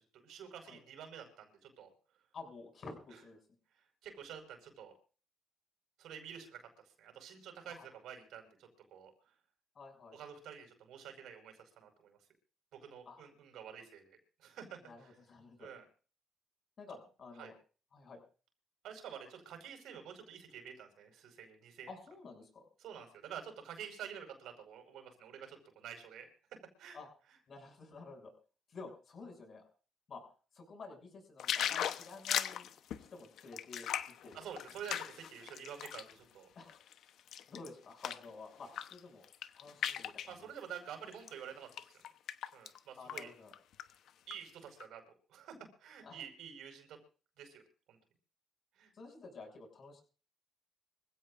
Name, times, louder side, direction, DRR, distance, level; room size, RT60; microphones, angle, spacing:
voice 1, 0.0-1.9 3.8-4.9 6.0-9.1 10.1-12.2 12.8-15.1 15.6-15.8 17.4-17.5 18.8-21.9 22.8-26.3 26.8-27.0 34.3-36.5 40.3-41.7 42.5-43.3 44.3-45.0 45.3-47.0 47.4-47.6 47.9-48.0 48.8-48.9, right 8 dB, 85° right, 5 dB, 5.1 m, -49 dB
voice 2, 2.3-3.4 7.7-7.9 9.7-10.2 13.1-13.2 14.9-15.7 16.8-17.6 17.9-18.2 21.9-22.7 26.9-27.1 27.5-28.3 28.7-29.6 30.1-32.7 33.0-33.9 34.2-34.4 34.9-35.0 36.6-36.8 37.5-39.3 39.5-40.5 43.0-43.5 46.0-46.2 48.9-50.0, left 3 dB, 50° left, 4 dB, 7.2 m, -51 dB
sound 1, 31.4-36.1 36.6-38.3 38.6-39.0 39.2-40.3 41.1-41.3 41.7-42.8 43.1-43.2 43.5-44.3 44.8-44.9, left 10 dB, 75° left, 1.0 m, -38 dB
25.0 x 16.5 x 2.6 m, 0.38 s
cardioid pair, 90°, 0 cm